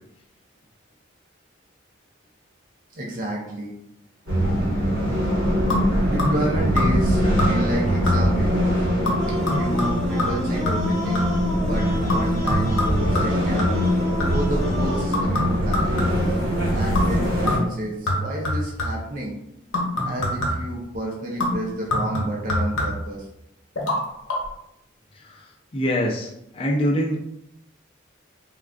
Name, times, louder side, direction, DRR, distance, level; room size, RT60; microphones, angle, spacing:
voice 1, 2.9-3.7 6.0-8.7 9.5-11.3 11.6-13.7 14.2-16.0 16.7-19.3 20.0-23.3, right 1 dB, 40° right, -2 dB, 0.5 m, -30 dB
sound 1, 4.3-17.6, equal, 70° right, 1.0 m, -23 dB
sound 2, 5.7-6.5 6.8-7.1 7.4-7.8 8.1-8.5 9.1-11.5 12.1-14.6 15.1-16.4 17.0-17.2 17.5-19.1 19.7-20.8 21.4-23.2 23.8-24.0 24.3-24.4, left 1 dB, 80° left, 0.9 m, -26 dB
sound 3, 9.2-15.2, equal, 5° left, 0.9 m, -32 dB
voice 2, 25.7-27.2, equal, 25° left, -1 dB, 0.4 m, -24 dB
3.6 x 2.3 x 2.3 m, 0.82 s
head